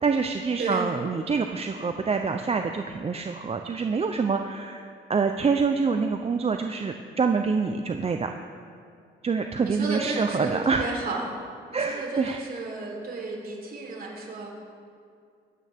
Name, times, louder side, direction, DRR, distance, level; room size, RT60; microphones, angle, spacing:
voice 1, 0.0-8.3 9.2-10.9 11.7-12.4, right 5 dB, 30° right, 5 dB, 0.7 m, -26 dB
voice 2, 9.6-11.3 11.7-14.5, right 3 dB, 50° right, -2 dB, 3.8 m, -33 dB
24.0 x 9.1 x 3.6 m, 2.3 s
cardioid pair, 90°, 20 cm